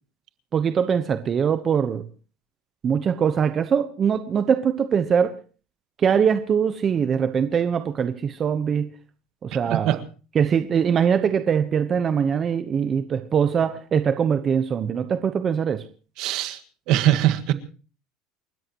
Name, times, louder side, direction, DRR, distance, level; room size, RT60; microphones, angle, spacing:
voice 1, 0.5-2.1 2.8-5.4 6.0-8.9 9.4-10.0 10.3-15.9, right 7 dB, 30° right, 1.0 m, -22 dB
voice 2, 16.2-16.6 16.9-17.5, right 13 dB, 60° right, 1.7 m, -21 dB
29.5 x 13.5 x 3.0 m
cardioid pair, 135°, 0 cm